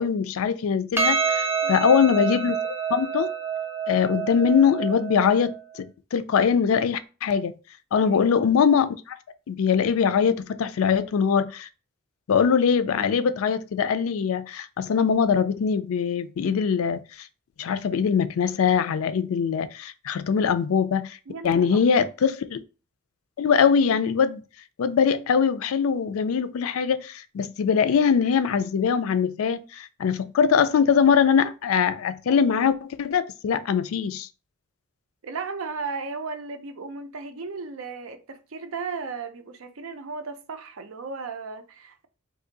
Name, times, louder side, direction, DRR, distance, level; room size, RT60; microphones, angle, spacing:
voice 1, 0.0-3.3 3.9-7.6 7.9-9.2 9.5-11.7 12.3-17.0 17.6-21.2 21.4-22.6 23.4-24.4 24.8-34.3, left 6 dB, 90° left, 0.4 m, -22 dB
Percussion, 1.0-5.6, right 5 dB, 10° right, 0.4 m, -27 dB
voice 2, 1.6-2.3 8.0-8.4 21.3-22.1 35.2-42.1, right 4 dB, 80° right, 0.5 m, -36 dB
2.7 x 2.6 x 3.8 m
head